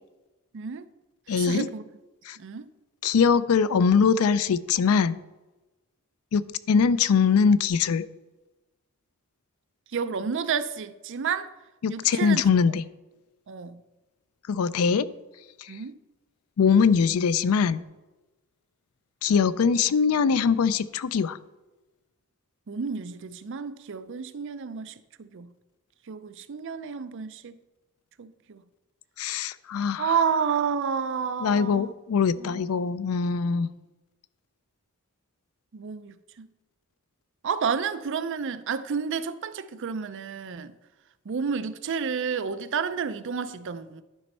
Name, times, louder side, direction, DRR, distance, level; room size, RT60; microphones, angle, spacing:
voice 1, 0.5-0.8 1.3-1.8 2.4-2.7 9.9-11.5 11.9-12.4 13.5-13.8 15.7-16.0 22.7-25.5 26.1-27.6 28.2-28.6 30.0-31.9 32.4-32.6 35.7-36.5 37.4-40.7 41.3-44.0, right 6 dB, 60° right, 0.5 m, -30 dB
voice 2, 1.3-1.7 2.3-2.4 3.0-5.2 6.3-8.1 11.8-12.8 14.5-15.1 16.6-17.8 19.2-21.4 29.2-30.1 31.4-33.7, left 6 dB, 85° left, 0.4 m, -22 dB
11.5 x 4.3 x 5.4 m
head